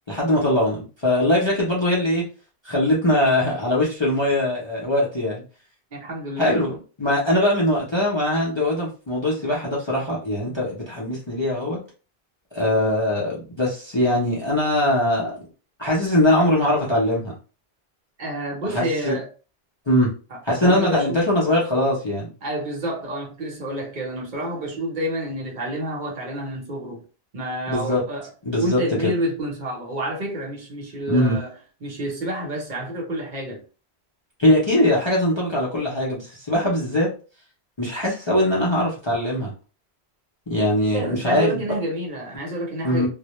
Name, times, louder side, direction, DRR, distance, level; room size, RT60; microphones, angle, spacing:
voice 1, 0.1-2.3 2.6-5.4 6.4-11.8 12.5-15.4 15.8-17.3 18.7-19.2 19.9-20.1 20.4-22.3 27.7-28.0 28.4-29.1 31.1-31.4 34.4-37.1 37.8-39.5 40.5-41.6 42.8-43.1, left 1 dB, 35° left, 0.5 m, -21 dB
voice 2, 5.9-6.6 18.2-19.3 20.3-21.2 22.4-27.0 27.3-28.3 28.6-31.5 31.8-33.6 40.9-43.1, right 1 dB, 50° right, 0.8 m, -29 dB
2.1 x 2.0 x 2.8 m
omnidirectional pair, 1.1 m